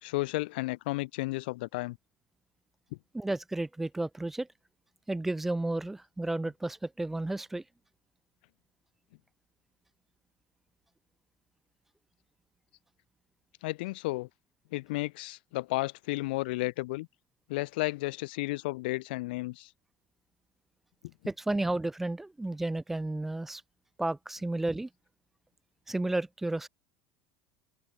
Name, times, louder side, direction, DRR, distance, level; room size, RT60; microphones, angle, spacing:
voice 1, 0.0-2.0 13.6-14.3 14.7-17.1 17.5-19.7, left 21 dB, 85° left, 1.2 m, -33 dB
voice 2, 3.1-4.5 5.1-7.6 21.3-23.6 24.0-24.9 25.9-26.7, right 2 dB, 5° right, 0.6 m, -32 dB
open air
cardioid pair, 170°, 5 cm